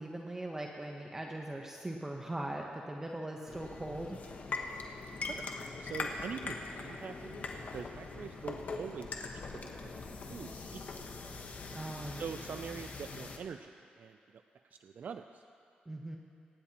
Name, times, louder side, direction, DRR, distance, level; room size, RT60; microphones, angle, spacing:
voice 1, 0.0-4.2 11.7-12.3 15.9-16.2, right 1 dB, 15° right, 1 dB, 0.9 m, -40 dB
sound 1, 3.5-13.4, left 3 dB, 55° left, 1.2 m, -42 dB
voice 2, 5.8-10.0 10.3-10.8 12.2-15.4, right 6 dB, 60° right, 8 dB, 0.4 m, -44 dB
23.5 x 9.8 x 2.9 m, 2.6 s
cardioid pair, 80°, 3 cm